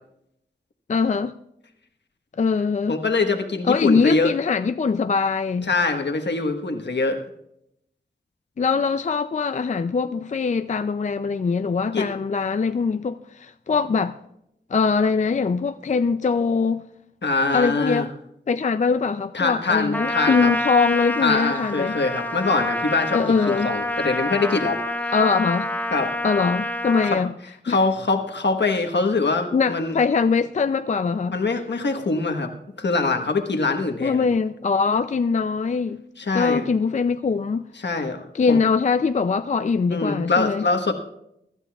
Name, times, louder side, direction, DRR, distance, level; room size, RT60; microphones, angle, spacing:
voice 1, 0.9-1.3 2.4-3.0 3.7-5.7 8.6-14.2 14.7-16.8 17.5-18.1 18.5-22.0 23.1-23.7 25.1-25.7 26.2-27.3 27.7-27.8 28.7-28.8 29.5-31.4 34.0-36.0 36.3-37.7 38.3-40.6, left 5 dB, 40° left, 0.4 m, -22 dB
voice 2, 2.9-4.3 5.7-7.2 11.9-12.1 17.2-18.1 19.3-20.5 21.2-24.8 25.9-26.1 27.0-27.2 27.6-30.0 31.3-34.3 36.2-36.6 37.8-38.6 39.9-40.9, left 3 dB, 75° left, 1.3 m, -23 dB
Trumpet, 19.9-27.2, left 1 dB, 10° left, 0.7 m, -27 dB
23.5 x 12.0 x 2.4 m
wide cardioid pair, 80°, 18 cm